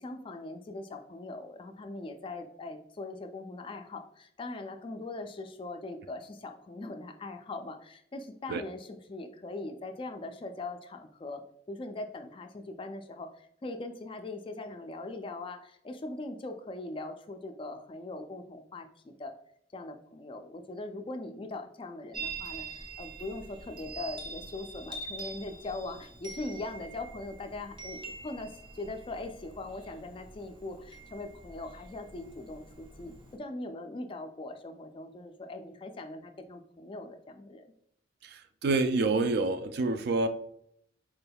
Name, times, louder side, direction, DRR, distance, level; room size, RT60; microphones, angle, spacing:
voice 1, 0.0-11.4 11.7-19.3 19.7-37.7, left 2 dB, 30° left, 6 dB, 0.3 m, -41 dB
Chime, 22.1-33.4, right 3 dB, 25° right, 0.7 m, -45 dB
voice 2, 38.2-40.3, right 3 dB, 55° right, 9 dB, 0.3 m, -27 dB
4.4 x 3.4 x 2.2 m, 0.70 s
head